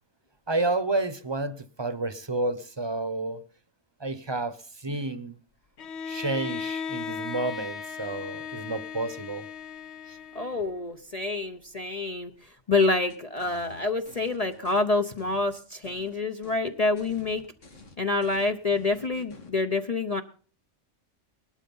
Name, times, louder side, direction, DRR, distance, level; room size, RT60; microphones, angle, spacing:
voice 1, 0.5-3.4 4.0-5.4 6.1-9.5 10.1-10.2, right 2 dB, 25° right, 14 dB, 1.0 m, -30 dB
Bowed string instrument, 5.8-10.8, left 6 dB, 65° left, 1.3 m, -37 dB
voice 2, 10.3-17.4 18.0-20.2, left 3 dB, 35° left, 6 dB, 0.9 m, -27 dB
sound 1, 13.1-14.8 15.2-16.1 16.4-16.6 17.0-19.5, left 3 dB, 85° left, 2.5 m, -50 dB
19.5 x 12.0 x 5.5 m, 0.42 s
omnidirectional pair, 1.2 m